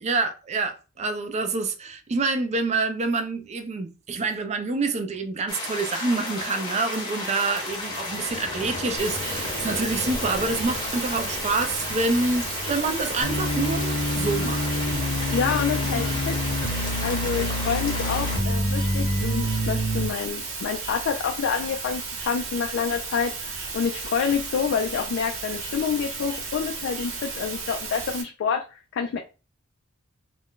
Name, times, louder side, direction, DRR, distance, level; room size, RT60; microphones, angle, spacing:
voice 1, 0.0-14.7 16.0-16.1 16.8-17.1, right 3 dB, 30° right, 0.4 m, -27 dB
sound 1, 5.5-18.4, left 2 dB, 20° left, 0.8 m, -33 dB
sound 2, 9.0-28.2, right 4 dB, 70° right, 0.9 m, -34 dB
sound 3, 13.2-20.1, left 1 dB, 80° left, 0.8 m, -27 dB
voice 2, 15.3-16.3 17.0-29.2, left 6 dB, 55° left, 0.3 m, -28 dB
2.4 x 2.2 x 3.6 m
head